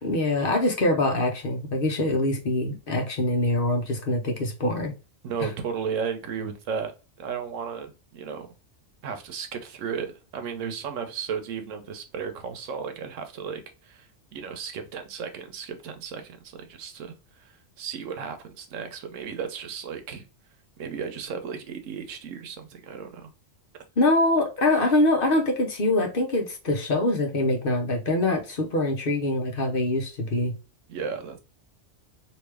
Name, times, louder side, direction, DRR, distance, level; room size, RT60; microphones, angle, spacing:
voice 1, 0.0-4.9 5.4-5.5 24.0-30.5, left 2 dB, 50° left, 0.9 m, -24 dB
voice 2, 5.2-6.9 7.2-8.5 9.0-17.1 17.8-20.2 20.8-23.3 24.8-24.9 30.9-31.4, right 6 dB, 85° right, 1.1 m, -34 dB
3.2 x 2.8 x 3.3 m
omnidirectional pair, 1.3 m